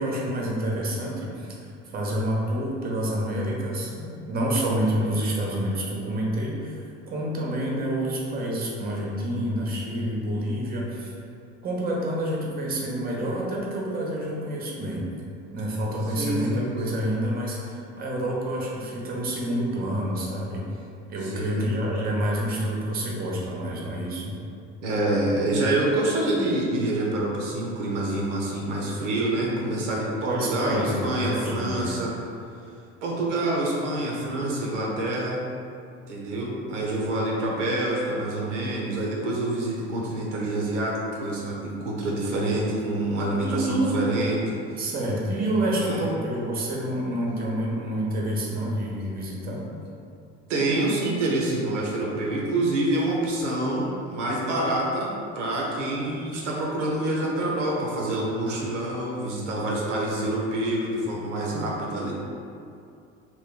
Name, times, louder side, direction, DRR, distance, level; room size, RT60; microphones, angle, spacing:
voice 1, 0.0-1.5 1.9-6.8 7.1-11.1 11.6-15.1 15.5-20.7 21.1-24.4 30.2-32.0 43.4-44.0 44.8-49.7, right 1 dB, 25° right, -3 dB, 0.7 m, -28 dB
voice 2, 16.2-16.8 21.2-21.6 24.8-32.1 33.0-35.4 36.1-40.9 41.2-44.8 45.8-46.1 50.5-55.1 55.4-62.1, right 1 dB, 75° right, -3 dB, 0.6 m, -27 dB
2.8 x 2.1 x 3.7 m, 2.5 s
figure-of-eight pair, 65°, 36 cm